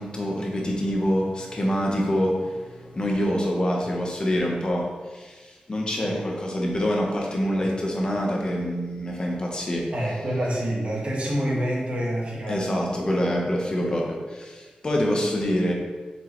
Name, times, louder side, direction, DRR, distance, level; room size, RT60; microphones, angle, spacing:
voice 1, 0.0-9.9 12.5-15.7, equal, 30° left, -1 dB, 1.0 m, -26 dB
voice 2, 9.9-12.7, equal, 50° right, -4 dB, 1.7 m, -27 dB
6.6 x 5.1 x 3.1 m, 1.3 s
wide cardioid pair, 140°, 3 cm